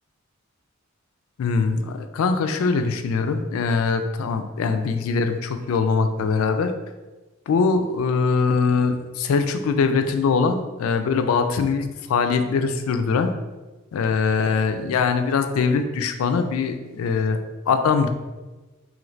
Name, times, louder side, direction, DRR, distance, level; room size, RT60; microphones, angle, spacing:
voice 1, 1.4-6.7 7.5-13.3 13.9-17.4 17.7-18.1, left 5 dB, 85° left, 8 dB, 0.3 m, -22 dB
3.0 x 2.5 x 3.1 m, 1.2 s
head